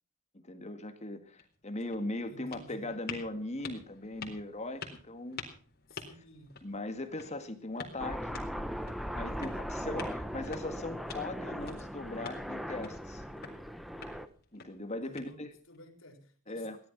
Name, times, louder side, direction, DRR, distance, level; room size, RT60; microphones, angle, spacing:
voice 1, 0.3-5.4 6.6-8.4 9.1-13.2 14.5-15.5 16.5-16.8, left 2 dB, 35° left, 8 dB, 1.9 m, -39 dB
sound 1, 1.2-15.8, left 5 dB, 50° left, 4.0 m, -49 dB
voice 2, 2.3-3.0 5.9-6.6 9.3-9.7 15.0-16.7, equal, 70° left, 4 dB, 4.4 m, -53 dB
Aircraft, 8.0-14.3, equal, ahead, 1.0 m, -39 dB
18.0 x 12.0 x 6.0 m, 0.43 s
head